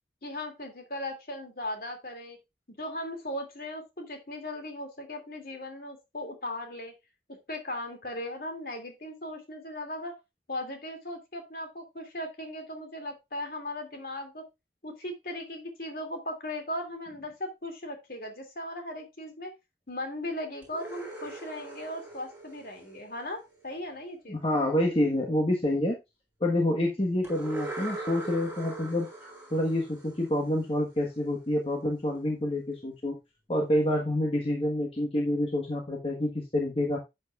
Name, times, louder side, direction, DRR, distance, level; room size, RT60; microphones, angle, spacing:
voice 1, 0.2-2.4 2.8-6.9 7.3-10.2 10.5-14.4 14.8-19.5 19.9-24.4, left 1 dB, 55° left, 4 dB, 2.5 m, -38 dB
sound 1, 20.6-23.6 27.2-31.0, right 2 dB, 10° right, 3.6 m, -41 dB
voice 2, 24.3-26.0 26.4-33.2 33.5-37.0, left 1 dB, 30° left, 0 dB, 1.3 m, -28 dB
11.5 x 8.0 x 2.4 m, 0.23 s
head